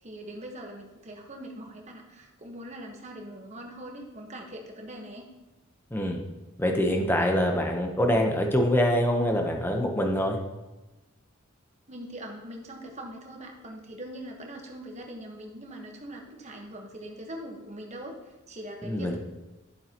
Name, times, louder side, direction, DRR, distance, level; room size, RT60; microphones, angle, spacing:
voice 1, 0.0-5.3 11.9-19.2, right 1 dB, 30° right, 1 dB, 1.2 m, -42 dB
voice 2, 6.6-10.4 18.8-19.2, equal, 10° left, 2 dB, 0.9 m, -25 dB
10.5 x 7.6 x 2.9 m, 1.1 s
head